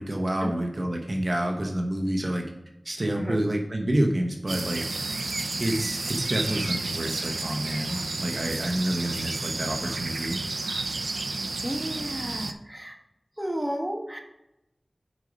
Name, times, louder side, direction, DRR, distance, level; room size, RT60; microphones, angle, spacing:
voice 1, 0.0-2.4 2.8-4.8 5.6-10.4, right 1 dB, 50° right, 2 dB, 1.0 m, -28 dB
sound 1, 4.5-12.5, right 3 dB, 90° right, 0.4 m, -31 dB
voice 2, 11.6-13.0 13.4-14.2, equal, 15° right, 2 dB, 1.3 m, -32 dB
6.3 x 5.2 x 5.2 m, 0.89 s
wide cardioid pair, 50°, 0 cm